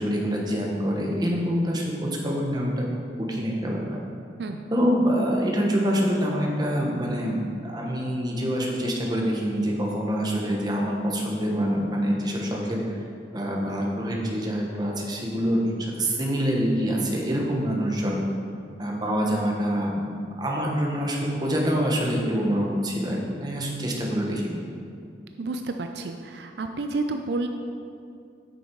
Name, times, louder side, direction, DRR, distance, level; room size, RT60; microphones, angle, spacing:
voice 1, 0.0-2.9 3.3-4.0 4.7-13.0 13.3-18.2 18.8-24.6, equal, 25° right, -2 dB, 1.1 m, -26 dB
voice 2, 25.4-27.5, right 3 dB, 70° right, 5 dB, 0.4 m, -30 dB
8.7 x 6.3 x 4.6 m, 2.4 s
head